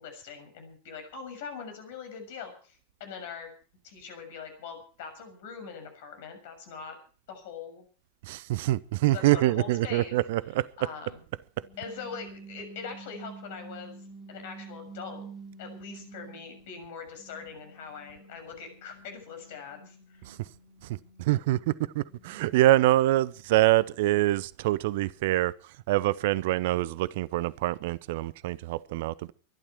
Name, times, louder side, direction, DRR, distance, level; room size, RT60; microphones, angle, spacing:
voice 1, 0.0-3.5 3.8-6.9 7.3-7.8 9.1-10.2 10.8-11.2 11.8-15.3 15.6-20.3, left 6 dB, 50° left, 6.7 m, -42 dB
voice 2, 8.3-10.7 20.3-20.4 21.2-25.5 25.9-29.3, right 16 dB, 50° right, 0.7 m, -25 dB
sound 1, 11.5-16.8 17.2-23.4, right 4 dB, 20° right, 5.7 m, -49 dB
23.0 x 12.0 x 4.6 m
figure-of-eight pair, 90°, 0 cm